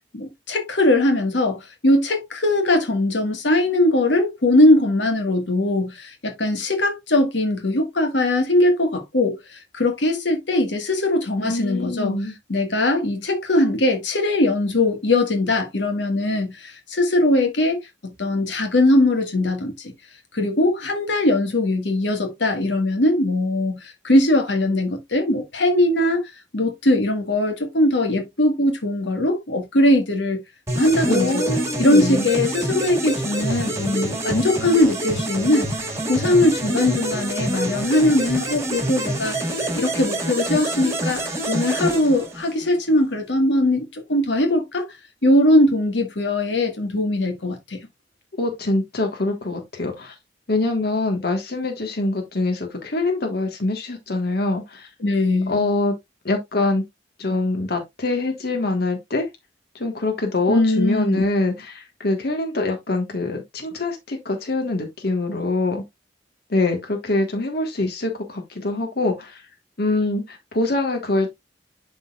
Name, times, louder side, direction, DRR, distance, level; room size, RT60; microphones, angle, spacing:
voice 1, 0.1-12.2 12.5-19.9 20.3-30.4 30.7-31.4 31.8-35.7 36.1-44.9 45.2-47.8 55.0-55.6 60.5-61.2, left 1 dB, 75° left, 1.6 m, -20 dB
voice 2, 11.4-12.3 31.0-32.3 48.4-50.1 50.5-54.9 55.5-56.0 56.2-56.8 57.2-59.3 59.7-65.8 66.5-69.4 69.8-71.3, left 2 dB, 60° left, 1.5 m, -24 dB
sound 1, 30.7-42.7, right 1 dB, 15° right, 1.8 m, -26 dB
11.5 x 3.9 x 2.4 m
head